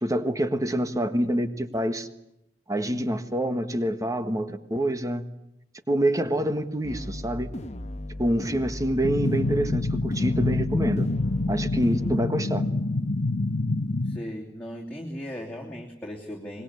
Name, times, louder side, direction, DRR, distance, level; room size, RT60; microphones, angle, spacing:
voice 1, 0.0-2.1 2.7-5.2 5.9-7.5 8.2-11.1 11.5-12.6, right 1 dB, 20° right, 10 dB, 1.5 m, -26 dB
sound 1, 6.8-12.2, left 1 dB, 35° left, 1.2 m, -36 dB
sound 2, 9.0-14.2, left 2 dB, 65° left, 1.0 m, -26 dB
voice 2, 14.0-16.6, equal, 10° left, -3 dB, 3.1 m, -37 dB
24.5 x 21.5 x 9.8 m, 0.82 s
head